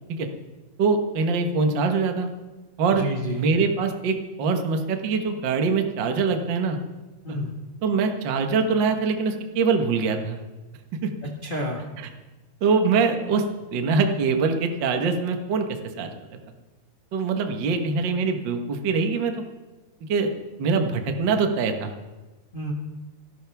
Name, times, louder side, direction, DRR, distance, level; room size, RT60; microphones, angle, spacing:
voice 1, 0.8-2.3 2.8-3.0 3.3-6.8 7.3-7.4 7.8-10.4 11.0-11.1 12.0-12.1 12.6-13.4 13.7-16.1 17.1-19.4 20.1-20.3 20.6-21.9, right 4 dB, 60° right, 5 dB, 1.2 m, -23 dB
voice 2, 2.9-3.4 7.2-7.5 11.4-11.8 22.5-22.7, equal, 35° left, -1 dB, 0.8 m, -29 dB
30.0 x 12.0 x 3.5 m, 1.2 s
omnidirectional pair, 4.0 m